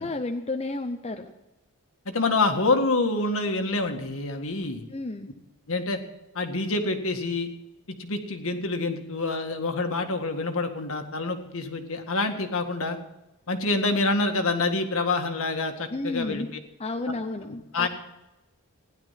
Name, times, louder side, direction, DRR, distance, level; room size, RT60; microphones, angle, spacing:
voice 1, 0.0-1.3 4.9-5.3 15.9-16.5 16.8-17.9, left 2 dB, 30° left, 5 dB, 0.7 m, -31 dB
voice 2, 2.1-4.9 5.7-6.0 6.3-7.5 8.0-13.0 13.5-16.5 17.4-17.9, left 3 dB, 65° left, 5 dB, 1.9 m, -27 dB
16.0 x 11.0 x 5.8 m, 0.95 s
head